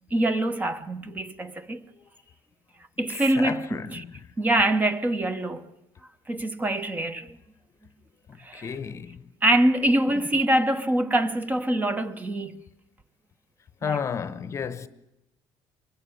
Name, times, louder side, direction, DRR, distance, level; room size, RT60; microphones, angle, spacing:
voice 1, 0.1-1.8 3.0-4.0 4.4-5.7 6.3-7.3 8.4-8.7 9.4-12.6 13.8-14.0, right 1 dB, 15° right, 0.9 m, -24 dB
voice 2, 3.3-4.3 8.3-9.3 10.1-10.2 13.8-14.9, left 7 dB, 30° left, 0.9 m, -33 dB
23.5 x 22.0 x 7.0 m
cardioid pair, 135°, 9 cm